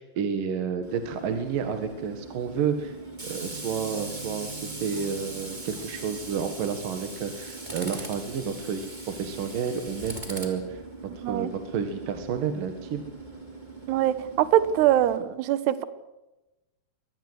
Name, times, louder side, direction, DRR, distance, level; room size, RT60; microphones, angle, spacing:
voice 1, 0.0-2.9 3.2-10.8 11.2-13.0, right 7 dB, 60° right, 7 dB, 3.0 m, -30 dB
Tools, 0.8-15.2, right 2 dB, 10° right, 3.2 m, -40 dB
voice 2, 13.9-15.9, right 12 dB, 75° right, 14 dB, 3.2 m, -23 dB
24.5 x 19.5 x 8.1 m, 0.99 s
omnidirectional pair, 5.0 m